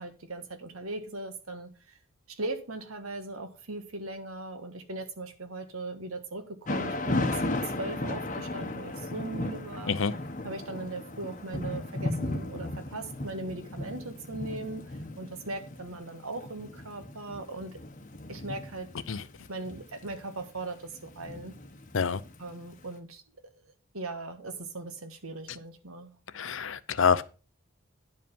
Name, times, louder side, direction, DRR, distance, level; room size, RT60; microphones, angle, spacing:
voice 1, 0.0-2.0 2.3-6.4 6.7-10.0 10.4-17.8 18.3-18.9 19.5-21.5 22.4-23.2 23.6-26.1, right 2 dB, 75° right, 1.6 m, -39 dB
Thunder / Rain, 6.7-22.7, left 2 dB, 35° left, 1.0 m, -36 dB
voice 2, 26.3-27.2, left 6 dB, 60° left, 0.6 m, -26 dB
10.5 x 5.2 x 5.3 m
head